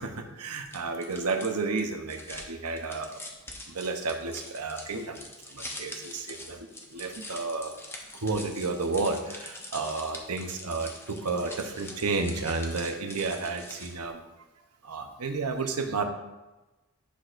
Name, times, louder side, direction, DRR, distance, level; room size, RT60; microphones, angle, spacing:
voice 1, 0.0-3.2 3.7-5.2 5.5-6.7 6.9-7.8 8.2-14.2 14.8-16.0, right 3 dB, 90° right, 6 dB, 0.9 m, -31 dB
sound 1, 0.7-14.1, left 1 dB, 10° left, 0.7 m, -44 dB
10.0 x 6.3 x 2.6 m, 1.1 s
head